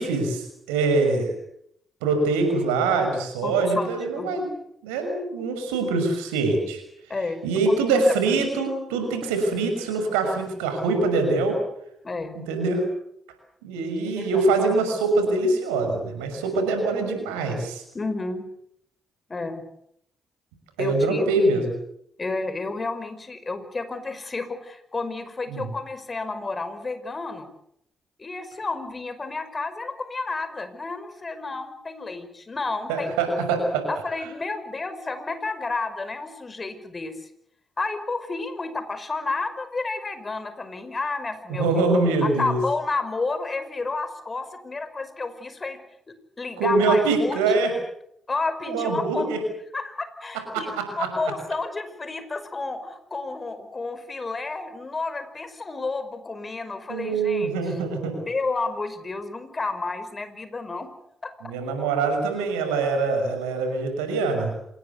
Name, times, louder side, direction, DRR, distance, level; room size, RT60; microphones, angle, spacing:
voice 1, 0.0-1.3 2.0-4.5 4.8-6.8 7.4-11.6 12.3-12.8 13.6-17.8 20.8-21.7 25.5-25.7 32.9-33.9 41.5-42.6 46.6-47.7 48.7-49.4 50.5-51.1 56.9-58.1 61.4-64.5, right 3 dB, 85° right, 5 dB, 6.2 m, -24 dB
voice 2, 3.4-3.9 4.1-4.3 7.1-7.8 8.3-8.4 12.0-12.4 14.1-14.4 17.9-18.5 19.3-19.6 20.8-21.5 22.2-27.5 28.2-33.4 33.9-37.3 37.8-41.6 42.2-45.8 46.4-47.4 48.3-49.3 49.7-57.5 58.3-60.9 61.2-61.3, left 3 dB, 40° left, 11 dB, 5.6 m, -31 dB
26.5 x 19.5 x 8.3 m, 0.74 s
hypercardioid pair, 40°, 0 cm